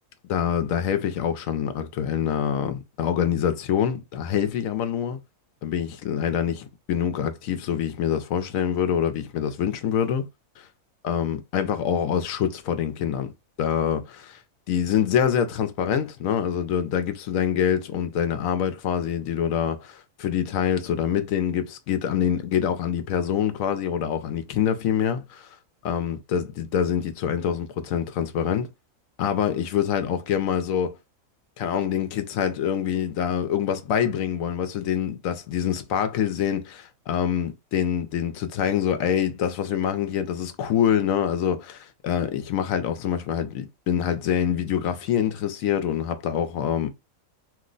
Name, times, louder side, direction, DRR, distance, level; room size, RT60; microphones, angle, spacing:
voice 1, 0.3-5.2 5.6-10.3 10.6-10.7 11.0-13.3 13.6-14.4 14.7-25.5 25.8-28.7 29.2-31.0 31.6-46.9, left 8 dB, 75° left, 1.0 m, -25 dB
2.9 x 2.1 x 3.8 m
omnidirectional pair, 1.5 m